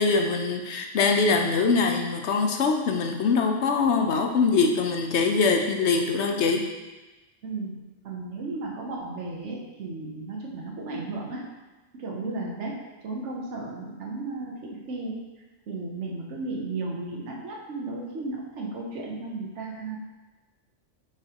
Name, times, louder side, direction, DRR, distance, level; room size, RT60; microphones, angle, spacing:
voice 1, 0.0-6.6, left 4 dB, 65° left, 3 dB, 0.9 m, -23 dB
voice 2, 7.4-11.4 11.9-15.2 15.7-20.0, right 3 dB, 65° right, -2 dB, 1.2 m, -34 dB
8.4 x 4.9 x 2.9 m, 1.1 s
omnidirectional pair, 1.3 m